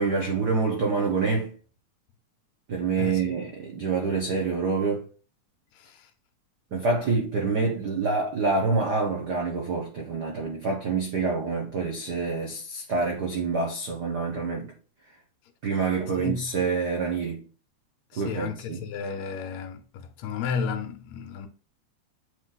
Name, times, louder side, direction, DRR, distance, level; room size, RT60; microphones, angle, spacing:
voice 1, 0.0-1.5 2.7-5.0 6.7-14.7 15.6-17.4 18.2-18.8, right 4 dB, 85° right, 0.8 m, -27 dB
voice 2, 3.0-3.3 5.7-6.1 16.2-16.5 18.1-21.5, left 6 dB, 75° left, 1.8 m, -33 dB
7.9 x 3.2 x 3.9 m
omnidirectional pair, 3.4 m